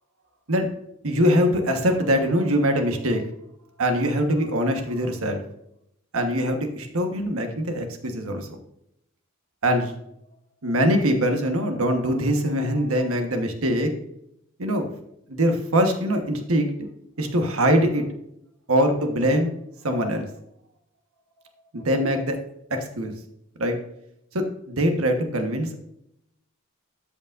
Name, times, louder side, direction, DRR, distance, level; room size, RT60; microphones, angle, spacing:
voice 1, 1.0-3.2 3.8-5.4 6.1-8.5 9.6-9.9 10.6-13.9 14.6-14.9 15.3-16.7 17.2-18.0 18.7-19.5 19.8-20.3 21.7-22.4 22.7-23.1 23.6-23.8 24.3-25.8, equal, 85° right, 5 dB, 1.3 m, -23 dB
13.0 x 5.1 x 2.5 m, 0.77 s
head